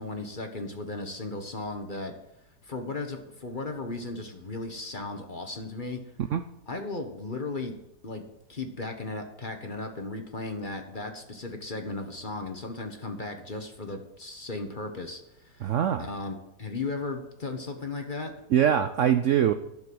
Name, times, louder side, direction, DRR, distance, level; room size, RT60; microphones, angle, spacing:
voice 1, 0.0-2.1 2.6-6.0 6.7-7.7 8.0-8.2 8.5-15.7 16.0-18.3, left 3 dB, 30° left, 5 dB, 1.2 m, -36 dB
voice 2, 15.6-16.1 18.5-19.5, right 9 dB, 65° right, 10 dB, 0.7 m, -23 dB
11.5 x 6.9 x 7.8 m, 0.86 s
omnidirectional pair, 1.9 m